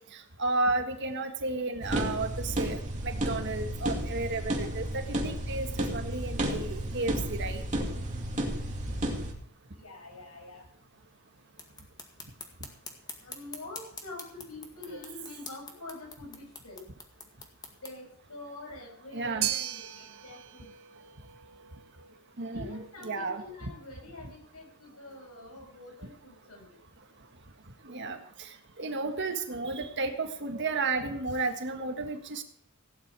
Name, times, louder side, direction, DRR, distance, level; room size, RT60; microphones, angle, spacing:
voice 1, 0.1-7.6 14.9-15.0 19.1-19.5 22.4-23.7 27.8-32.4, right 3 dB, 55° right, 6 dB, 1.6 m, -33 dB
sound 1, 1.8-9.3, right 1 dB, 35° right, 2.6 m, -32 dB
voice 2, 9.7-10.7 12.6-12.7 13.2-16.8 17.8-20.7 22.5-26.8, left 2 dB, 90° left, 1 dB, 6.2 m, -46 dB
sound 2, 11.5-18.0, left 4 dB, 20° left, 2.0 m, -47 dB
sound 3, 19.4-27.8, right 12 dB, 80° right, 1.2 m, -41 dB
16.5 x 10.5 x 4.8 m, 0.67 s
head